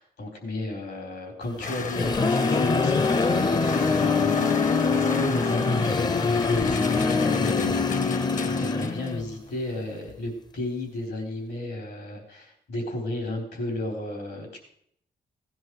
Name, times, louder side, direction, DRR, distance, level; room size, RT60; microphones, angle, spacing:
voice 1, 0.0-7.8 8.4-14.6, left 1 dB, 80° left, 3 dB, 4.0 m, -34 dB
sound 1, 1.6-9.2, left 5 dB, 50° left, 0.9 m, -34 dB
sound 2, 1.6-9.3, left 4 dB, 25° left, 0.5 m, -24 dB
17.5 x 10.0 x 4.7 m, 0.66 s
cardioid pair, 75°, 17 cm